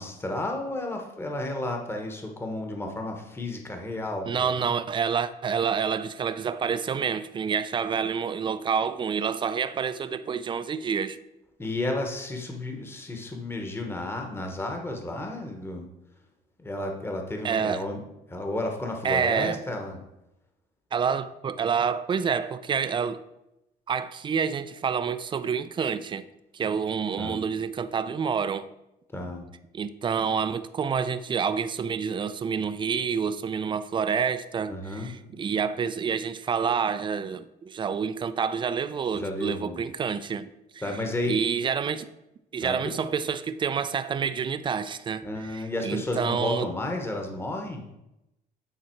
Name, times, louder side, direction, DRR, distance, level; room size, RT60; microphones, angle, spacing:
voice 1, 0.0-4.5 11.6-15.9 16.6-18.0 18.3-20.0 27.2-27.4 29.1-29.5 34.7-35.1 39.1-39.8 40.8-41.4 42.6-42.9 45.2-47.8, left 2 dB, 15° left, 1.0 m, -32 dB
voice 2, 4.3-11.2 17.4-17.9 19.0-19.6 20.9-23.2 23.9-26.2 26.5-28.7 29.7-40.5 41.3-42.1 42.5-46.7, right 6 dB, 30° right, 0.4 m, -28 dB
8.9 x 4.0 x 4.5 m
cardioid pair, 110°, 17 cm